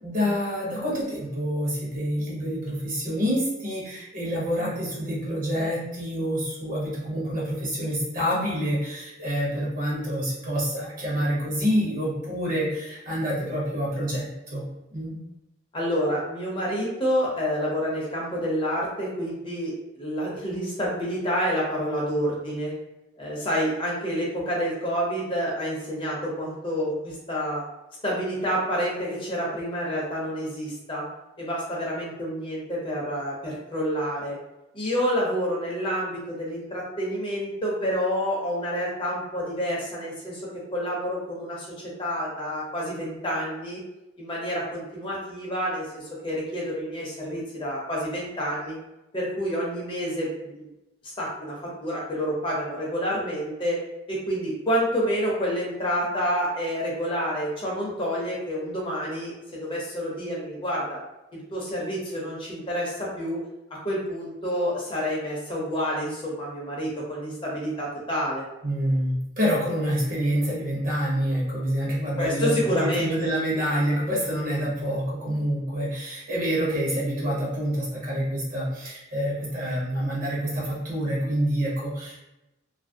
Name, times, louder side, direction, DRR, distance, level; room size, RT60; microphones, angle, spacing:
voice 1, 0.0-15.2 68.6-82.2, equal, 40° right, -4 dB, 0.8 m, -27 dB
voice 2, 15.7-22.7 23.2-27.6 28.0-31.1 31.4-34.4 34.7-43.8 44.2-48.8 49.1-50.7 51.2-53.8 54.1-61.0 61.3-63.4 63.8-68.4 72.2-73.3, equal, 25° left, -4 dB, 0.6 m, -28 dB
2.7 x 2.5 x 2.6 m, 0.95 s
head